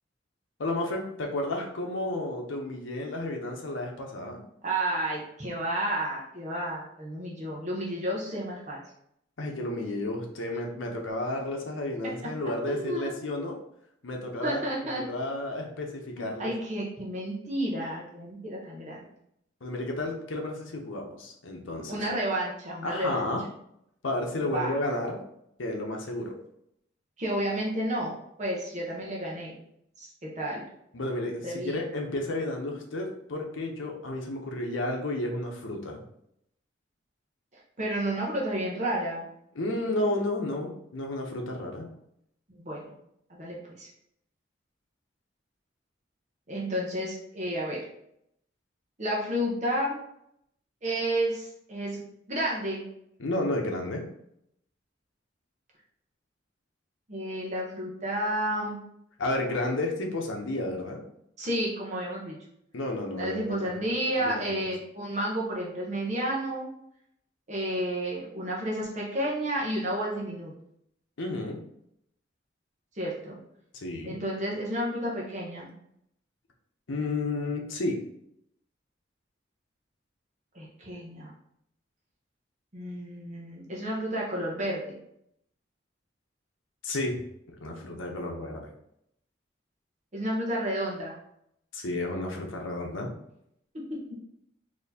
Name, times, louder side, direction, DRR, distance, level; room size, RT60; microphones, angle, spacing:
voice 1, 0.6-4.4 9.4-13.6 14.0-14.6 15.1-16.5 19.6-22.0 22.8-23.4 24.0-25.2 25.6-26.4 30.9-36.0 39.6-41.9 53.2-54.0 59.2-61.0 62.7-63.7 64.2-64.6 71.2-71.6 73.7-74.2 76.9-78.0 86.8-87.2 87.5-88.7 91.7-93.1, left 2 dB, 85° left, 1 dB, 0.7 m, -32 dB
voice 2, 4.6-8.8 12.0-12.1 12.7-13.1 14.4-15.0 16.2-19.1 21.9-23.2 24.5-24.7 27.2-29.5 30.0-30.7 31.4-31.8 37.8-39.3 42.6-42.9 43.3-43.9 46.5-47.8 49.0-50.0 50.8-52.8 57.1-58.8 61.4-62.4 63.2-66.7 67.5-70.5 73.0-73.4 74.0-75.7 80.5-81.3 82.7-84.8 90.1-91.1 93.7-94.2, right 1 dB, 40° right, -4 dB, 0.8 m, -31 dB
4.1 x 2.9 x 2.7 m, 0.74 s
head